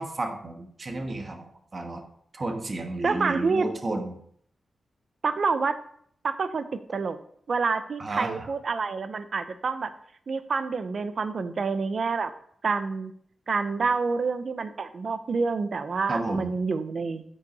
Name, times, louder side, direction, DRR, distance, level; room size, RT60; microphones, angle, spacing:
voice 1, 0.0-2.0 2.3-4.2 8.0-8.5 16.1-16.5, right 2 dB, 35° right, 4 dB, 1.2 m, -32 dB
voice 2, 3.0-3.7 5.2-5.8 6.2-6.7 6.9-7.2 7.5-9.9 10.3-12.3 12.6-13.1 13.5-17.2, right 4 dB, 55° right, 11 dB, 0.6 m, -27 dB
9.6 x 5.6 x 4.1 m, 0.64 s
wide cardioid pair, 120°, 0 cm